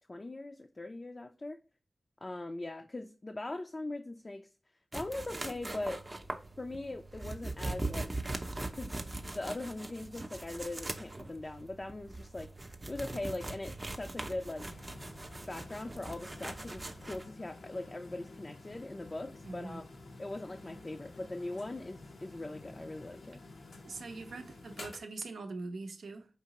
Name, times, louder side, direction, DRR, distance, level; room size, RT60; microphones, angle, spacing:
voice 1, 0.1-1.6 2.2-4.5 4.9-6.0 6.6-8.1 8.7-12.5 12.9-14.7 15.5-19.8 20.2-23.4, left 2 dB, 35° left, 0.4 m, -41 dB
sound 1, 4.9-17.2, right 2 dB, 30° right, 0.6 m, -41 dB
sound 2, 14.6-25.0, left 2 dB, 85° left, 0.7 m, -51 dB
voice 2, 19.4-19.8 23.8-26.3, right 3 dB, 85° right, 0.6 m, -42 dB
4.6 x 2.9 x 2.8 m
cardioid pair, 55°, 0 cm